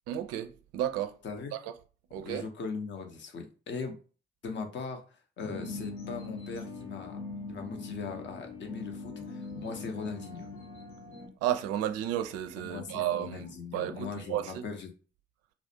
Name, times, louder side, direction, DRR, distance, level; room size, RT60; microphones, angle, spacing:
voice 1, 0.1-1.1 2.1-2.5 11.4-14.6, right 11 dB, 55° right, 0.4 m, -32 dB
voice 2, 1.2-1.6 2.2-4.0 4.4-7.2 7.5-10.5 12.6-14.9, left 5 dB, 40° left, 0.6 m, -39 dB
sound 1, 5.4-11.3, left 3 dB, 65° left, 0.9 m, -41 dB
2.4 x 2.1 x 2.7 m
figure-of-eight pair, 45°, 30 cm